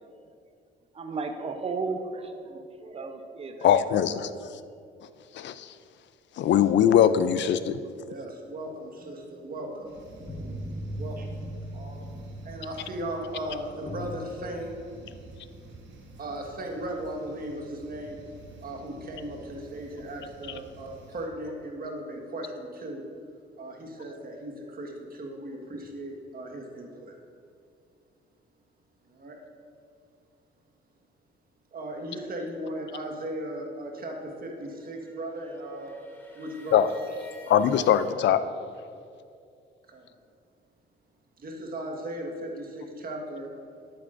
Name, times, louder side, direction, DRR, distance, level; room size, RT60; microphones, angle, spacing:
voice 1, 0.9-3.7, right 4 dB, 30° right, 6 dB, 0.7 m, -34 dB
voice 2, 3.6-4.6 5.3-5.7 6.4-7.8 36.7-36.9 37.5-38.4, left 9 dB, 65° left, 13 dB, 0.5 m, -22 dB
voice 3, 8.1-9.9 11.0-11.2 11.7-12.0 12.4-14.7 16.2-18.2 18.6-23.0 23.6-27.2 29.1-29.4 31.7-36.0 36.3-36.8 39.9-40.1 41.4-43.5, right 1 dB, 50° right, 1 dB, 1.5 m, -37 dB
sound 1, 9.0-14.1, equal, 25° left, 1.6 m, -40 dB
sound 2, 9.8-21.3, right 2 dB, 70° right, 1.4 m, -48 dB
sound 3, 34.6-38.2, left 1 dB, 10° left, 1.5 m, -51 dB
11.0 x 8.6 x 2.6 m, 2.4 s
cardioid pair, 90°, 20 cm